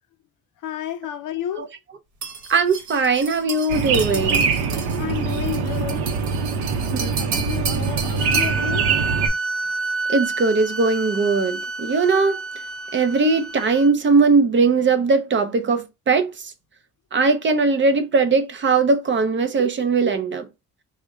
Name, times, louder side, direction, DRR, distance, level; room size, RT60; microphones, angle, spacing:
voice 1, 0.6-1.7 5.0-6.1 7.2-8.9, left 12 dB, 55° left, 0.5 m, -31 dB
sound 1, 2.2-8.6, right 6 dB, 50° right, 1.0 m, -33 dB
voice 2, 2.5-4.5 6.9-7.1 10.1-12.4 12.9-16.5 17.1-20.5, right 4 dB, 30° right, 0.5 m, -19 dB
sound 2, 3.7-9.3, right 5 dB, 90° right, 0.7 m, -23 dB
sound 3, 8.2-13.9, right 3 dB, ahead, 0.9 m, -29 dB
3.4 x 2.2 x 3.6 m
cardioid pair, 110°, 37 cm